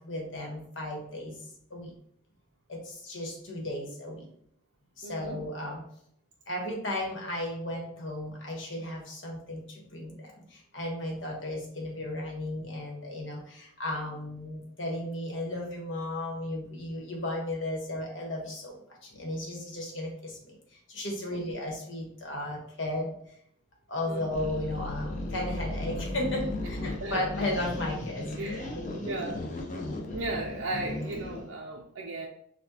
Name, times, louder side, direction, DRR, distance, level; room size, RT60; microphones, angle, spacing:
voice 1, 0.0-1.4 1.7-1.9 2.7-4.3 5.0-5.8 6.5-23.1 23.9-29.1, left 1 dB, 75° left, -1 dB, 1.2 m, -35 dB
voice 2, 5.0-5.4 21.3-21.6 24.1-24.4 26.9-27.2 28.4-28.7 29.0-29.5 30.1-32.3, right 2 dB, 90° right, -2 dB, 0.5 m, -36 dB
sound 1, 24.3-31.5, left 2 dB, 40° left, 0.6 m, -36 dB
6.1 x 2.3 x 2.8 m, 0.69 s
head